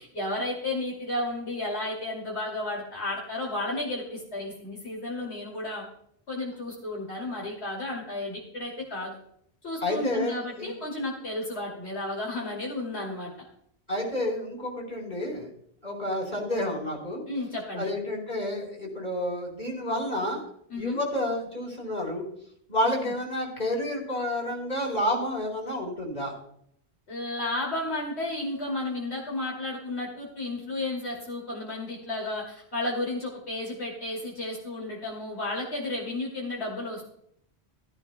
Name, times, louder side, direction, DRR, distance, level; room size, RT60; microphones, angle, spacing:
voice 1, 0.0-5.8 6.3-9.2 9.6-13.5 17.3-17.9 20.7-21.0 23.0-23.1 27.1-37.1, left 2 dB, 80° left, -3 dB, 2.9 m, -33 dB
voice 2, 9.8-10.7 13.9-15.5 15.8-17.2 17.7-20.4 20.7-22.3 22.7-26.3, left 1 dB, 45° left, -1 dB, 4.4 m, -30 dB
16.0 x 14.5 x 2.3 m, 0.69 s
omnidirectional pair, 1.1 m